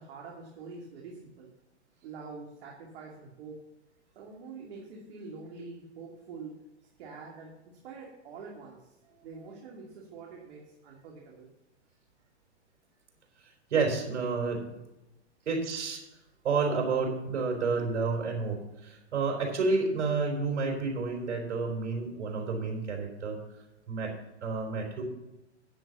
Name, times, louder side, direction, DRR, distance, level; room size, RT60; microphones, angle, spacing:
voice 1, 0.0-1.5 2.0-3.6 4.1-6.6 7.0-8.9 9.2-11.5, right 4 dB, 55° right, -2 dB, 2.7 m, -45 dB
voice 2, 13.7-14.7 15.5-16.0 16.4-23.4 23.9-24.1 24.4-25.0, right 4 dB, 75° right, 1 dB, 4.2 m, -30 dB
9.7 x 7.8 x 7.0 m, 0.96 s
hypercardioid pair, 130°, 35 cm